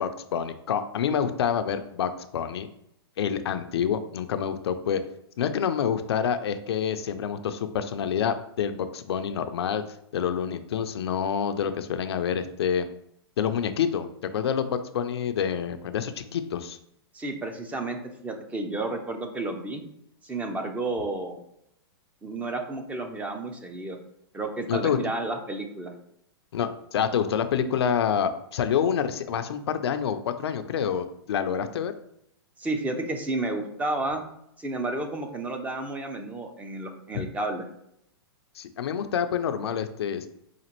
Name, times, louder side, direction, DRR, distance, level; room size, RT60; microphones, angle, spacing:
voice 1, 0.0-2.7 3.2-5.0 5.4-9.8 10.1-12.9 13.4-14.1 14.3-16.8 24.7-25.0 26.5-31.9 38.6-40.3, left 8 dB, 75° left, 9 dB, 0.4 m, -27 dB
voice 2, 17.1-19.8 20.2-21.4 22.2-24.0 24.3-25.9 32.6-34.2 34.6-37.6, right 2 dB, 10° right, 4 dB, 0.5 m, -31 dB
4.9 x 2.5 x 2.9 m, 0.75 s
hypercardioid pair, 130°, 14 cm